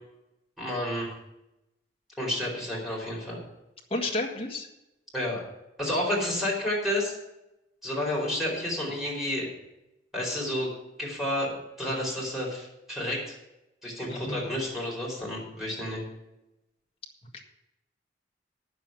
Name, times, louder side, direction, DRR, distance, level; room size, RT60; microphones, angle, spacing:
voice 1, 0.6-1.1 2.2-3.4 5.1-5.4 5.8-7.2 7.8-9.5 10.1-10.7 11.0-13.3 13.8-16.0, left 1 dB, ahead, -5 dB, 4.7 m, -30 dB
voice 2, 3.9-4.7 14.1-14.5 17.3-17.4, left 2 dB, 35° left, 0 dB, 1.7 m, -31 dB
9.4 x 7.1 x 9.2 m, 0.91 s
head